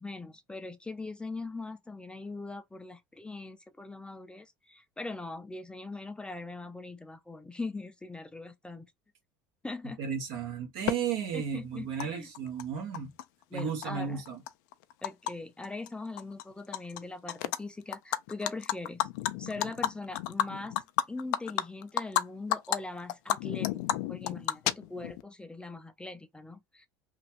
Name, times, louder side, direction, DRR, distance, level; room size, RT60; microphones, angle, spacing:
voice 1, 0.0-8.9 9.6-10.0 11.3-12.3 13.5-14.2 15.0-19.1 19.4-20.8 21.1-26.9, left 3 dB, 10° left, 0.4 m, -41 dB
voice 2, 10.0-13.1 13.5-14.4, right 7 dB, 70° right, 1.4 m, -34 dB
Animal, 10.9-11.0 12.0-12.1 12.3-13.2 13.6-15.3 15.6-15.9 16.2-17.0 17.3-17.6 17.9-22.2 22.5-22.8 23.1-25.2, left 13 dB, 75° left, 0.4 m, -31 dB
3.0 x 2.4 x 2.8 m
supercardioid pair, 95°, 10 cm